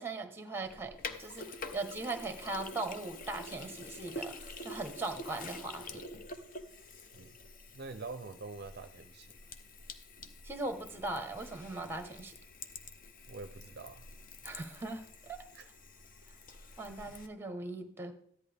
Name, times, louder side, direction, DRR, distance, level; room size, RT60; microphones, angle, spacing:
voice 1, 0.0-6.0 10.4-12.3 14.4-15.4 16.8-18.1, right 2 dB, 10° right, 7 dB, 1.0 m, -39 dB
Sink (filling or washing), 0.6-17.3, left 2 dB, 40° left, 0.8 m, -47 dB
voice 2, 7.7-9.3 13.3-14.1 15.5-15.7, right 3 dB, 50° right, 10 dB, 0.5 m, -45 dB
14.0 x 10.5 x 3.4 m, 0.68 s
head